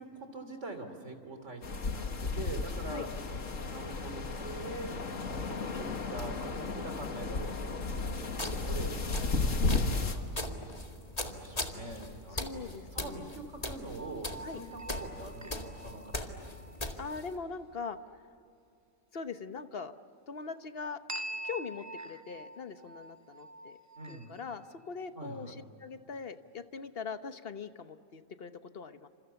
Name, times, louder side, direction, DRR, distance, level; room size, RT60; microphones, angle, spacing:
voice 1, 0.0-3.1 3.7-10.8 11.2-16.3 24.0-24.4 25.2-25.6, right 2 dB, 60° right, 7 dB, 3.4 m, -44 dB
sound 1, 1.6-10.1, left 3 dB, 70° left, 2.0 m, -34 dB
sound 2, 8.3-17.4, left 1 dB, 30° left, 2.1 m, -40 dB
voice 2, 12.3-13.3 14.4-14.6 17.0-18.2 19.1-19.9 20.3-21.0 21.3-23.8 24.1-29.1, left 5 dB, 50° left, 10 dB, 1.2 m, -41 dB
sound 3, 14.0-16.8 21.1-24.7, right 1 dB, 20° right, 0.5 m, -45 dB
29.0 x 27.5 x 7.0 m, 2.6 s
omnidirectional pair, 1.4 m